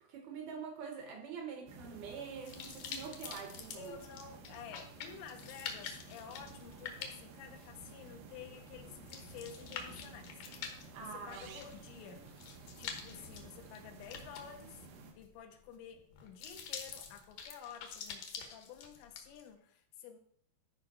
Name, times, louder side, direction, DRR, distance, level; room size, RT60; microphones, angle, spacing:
voice 1, 0.1-4.0 10.9-11.6, right 6 dB, 75° right, 4 dB, 2.3 m, -45 dB
sound 1, 1.7-15.1, right 3 dB, 90° right, 3.6 m, -53 dB
sound 2, 2.4-19.4, left 6 dB, 70° left, 2.0 m, -47 dB
voice 2, 3.8-10.3 10.7-12.3 12.8-14.9 15.2-20.2, left 7 dB, 90° left, 5 dB, 3.2 m, -51 dB
12.5 x 5.1 x 4.1 m, 0.66 s
omnidirectional pair, 5.1 m